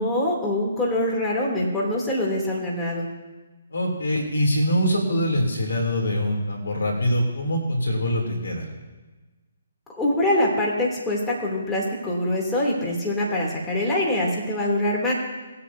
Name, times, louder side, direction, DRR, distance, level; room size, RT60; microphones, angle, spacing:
voice 1, 0.0-3.1 9.9-15.1, left 1 dB, 10° left, -5 dB, 2.9 m, -24 dB
voice 2, 3.7-8.7, equal, 70° left, 0 dB, 3.0 m, -23 dB
20.0 x 8.4 x 2.8 m, 1.2 s
figure-of-eight pair, 140°, 0 cm